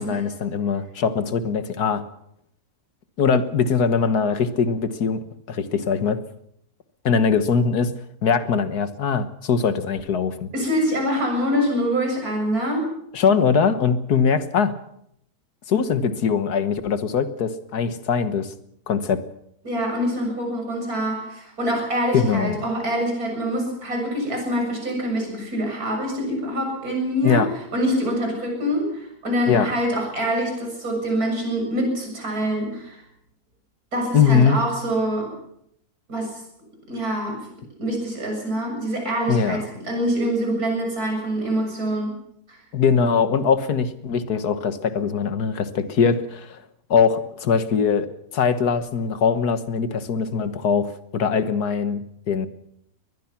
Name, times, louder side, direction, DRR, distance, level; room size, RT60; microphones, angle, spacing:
voice 1, 0.0-2.0 3.2-5.2 5.5-6.2 7.1-7.9 8.2-10.5 13.1-14.8 15.7-18.5 18.9-19.2 22.1-22.6 27.2-27.5 29.5-29.7 34.1-34.6 39.3-39.6 42.7-46.6 46.9-48.1 48.3-52.5, left 6 dB, 80° left, 11 dB, 1.8 m, -21 dB
voice 2, 10.5-12.9 19.6-33.0 33.9-35.3 36.1-36.4 36.9-37.5 37.8-42.1, equal, 70° right, 2 dB, 7.8 m, -25 dB
22.5 x 20.5 x 6.0 m, 0.72 s
omnidirectional pair, 1.6 m